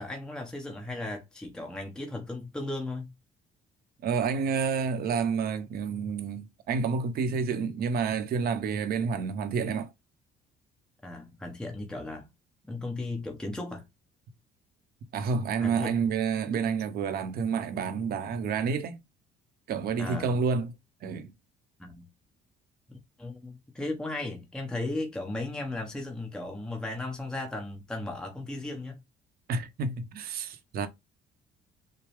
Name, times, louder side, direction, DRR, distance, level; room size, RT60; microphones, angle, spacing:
voice 1, 0.0-3.1 9.6-9.7 11.0-12.3 12.7-13.8 15.6-15.9 20.0-20.3 21.8-22.1 23.2-29.0, left 2 dB, 5° left, 1.1 m, -36 dB
voice 2, 4.0-9.9 15.1-19.0 19.7-20.7 21.0-21.3 29.5-30.9, right 5 dB, 65° right, 0.9 m, -29 dB
6.7 x 2.2 x 3.5 m
cardioid pair, 110°, 17 cm